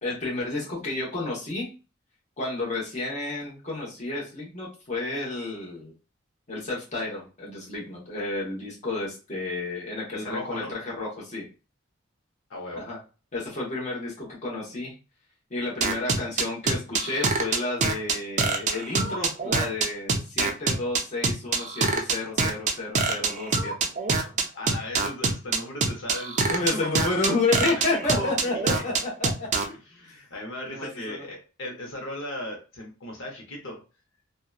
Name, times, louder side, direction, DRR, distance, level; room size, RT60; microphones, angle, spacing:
voice 1, 0.0-1.7 2.4-5.9 6.5-11.5 12.7-13.0 13.3-14.9 15.5-23.7 26.5-29.5 30.1-30.2 30.7-31.3, left 2 dB, 35° left, -4 dB, 0.9 m, -31 dB
voice 2, 10.1-10.7 12.5-12.9 24.5-26.4 26.7-27.2 28.0-28.3 28.7-28.8 29.6-33.8, left 1 dB, 70° left, 0 dB, 0.8 m, -36 dB
sound 1, 15.8-29.6, right 4 dB, 35° right, 0.4 m, -24 dB
2.7 x 2.2 x 2.3 m, 0.33 s
head